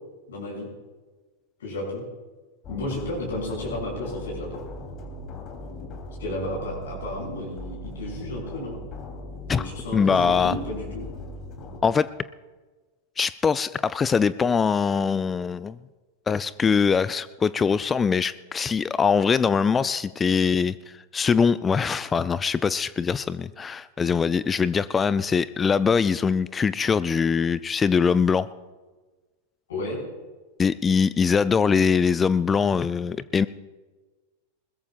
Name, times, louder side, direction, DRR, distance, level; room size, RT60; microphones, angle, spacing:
voice 1, 0.3-0.7 1.6-2.0 2.7-4.6 6.2-8.8 9.5-11.0 29.7-30.0, left 1 dB, 65° left, -4 dB, 6.2 m, -32 dB
sound 1, 2.6-11.8, left 1 dB, 35° left, 2.9 m, -39 dB
voice 2, 9.9-10.6 11.8-12.1 13.2-15.8 16.3-28.5 30.6-33.5, left 6 dB, 20° left, 17 dB, 0.3 m, -22 dB
21.5 x 21.0 x 2.3 m, 1.3 s
figure-of-eight pair, 90°, 0 cm